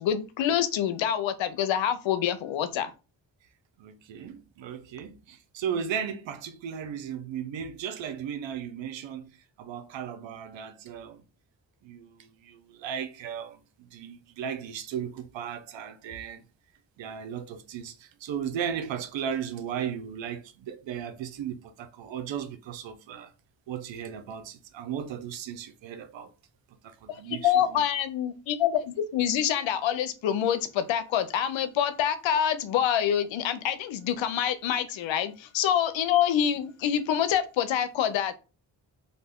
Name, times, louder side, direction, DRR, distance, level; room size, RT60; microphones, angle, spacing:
voice 1, 0.0-2.9 27.1-38.3, left 9 dB, 80° left, 0.6 m, -26 dB
voice 2, 3.8-11.2 11.8-16.4 17.0-23.3 23.7-26.3 26.8-27.8, right 8 dB, 75° right, 0.6 m, -36 dB
2.6 x 2.1 x 3.4 m
cardioid pair, 50°, 45 cm